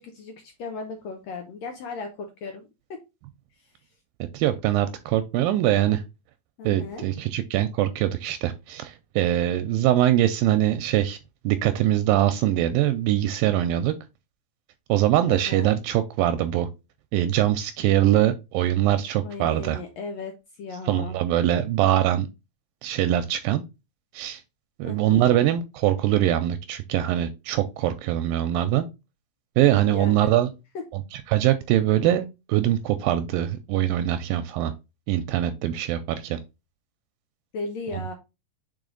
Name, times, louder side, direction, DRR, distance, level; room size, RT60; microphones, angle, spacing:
voice 1, 0.0-3.0 3.6-3.7 6.6-7.0 15.3-15.7 19.2-21.2 24.8-25.4 29.8-30.4 30.7-30.9 37.5-38.1, left 4 dB, 85° left, 4 dB, 1.5 m, -36 dB
voice 2, 4.3-6.0 6.7-11.2 11.5-13.9 14.9-16.7 17.1-19.8 20.9-22.3 22.8-23.6 24.1-24.4 24.8-28.8 29.6-30.5 31.3-34.7 35.1-36.4, right 12 dB, 80° right, 10 dB, 2.2 m, -22 dB
5.1 x 5.0 x 3.8 m, 0.26 s
omnidirectional pair, 4.2 m